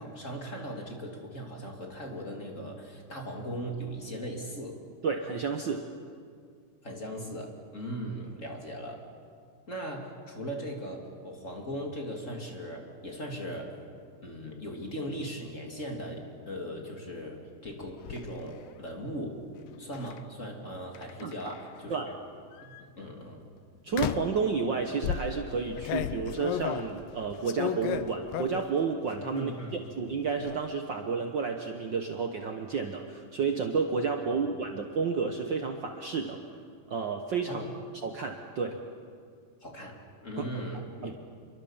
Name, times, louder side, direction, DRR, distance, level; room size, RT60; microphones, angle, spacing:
voice 1, 0.0-4.9 6.8-9.0 9.7-13.8 14.2-19.4 19.8-22.2 22.6-23.4 29.3-29.9 34.2-34.7 37.5-37.7 39.6-41.2, equal, 25° left, 1 dB, 2.5 m, -39 dB
voice 2, 5.0-5.9 21.2-21.5 21.9-22.1 23.8-36.4 36.9-37.6 38.0-38.8 40.4-40.5 41.0-41.1, right 5 dB, 85° right, 4 dB, 1.0 m, -31 dB
sound 1, 17.6-18.2 19.9-20.2 20.9-21.8 22.5-22.8 23.9-24.4 25.0-28.8 29.1-29.7 30.0-30.6, left 11 dB, 85° left, 2.5 m, -35 dB
28.5 x 23.0 x 7.3 m, 2.2 s
omnidirectional pair, 4.0 m